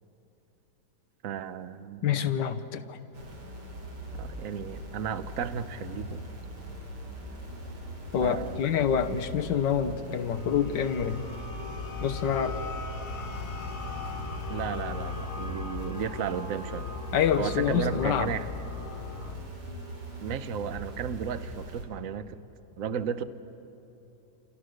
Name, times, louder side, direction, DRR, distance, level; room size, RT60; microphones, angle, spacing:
voice 1, 1.2-2.4 4.2-6.2 8.2-8.6 14.5-16.9 17.4-18.5 20.2-22.4 22.8-23.2, right 8 dB, 55° right, 12 dB, 1.1 m, -34 dB
voice 2, 2.0-3.0 8.1-11.3 12.0-12.6 17.1-18.3, left 8 dB, 80° left, 8 dB, 1.7 m, -27 dB
sound 1, 3.1-21.8, equal, 70° right, 3.7 m, -41 dB
sound 2, 10.0-19.4, left 4 dB, 60° left, 2.2 m, -39 dB
29.0 x 28.0 x 6.6 m, 3.0 s
omnidirectional pair, 1.9 m